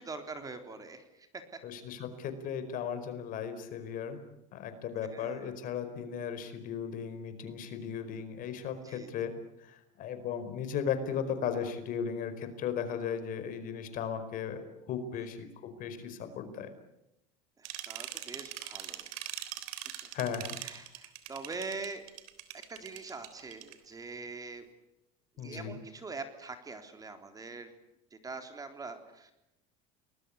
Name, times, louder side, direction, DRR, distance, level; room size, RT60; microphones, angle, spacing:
voice 1, 0.0-1.4 5.0-5.4 8.8-9.1 17.6-19.1 20.6-22.0 22.7-24.6 25.4-27.7 28.1-29.3, right 3 dB, 20° right, 7 dB, 3.7 m, -43 dB
voice 2, 1.6-4.2 4.5-9.3 9.6-14.6 14.9-16.7 20.1-20.6 25.4-25.8, left 7 dB, 55° left, 10 dB, 4.8 m, -36 dB
sound 1, 17.6-23.7, right 14 dB, 80° right, 3.6 m, -42 dB
30.0 x 20.5 x 8.4 m, 0.87 s
supercardioid pair, 110°, 17 cm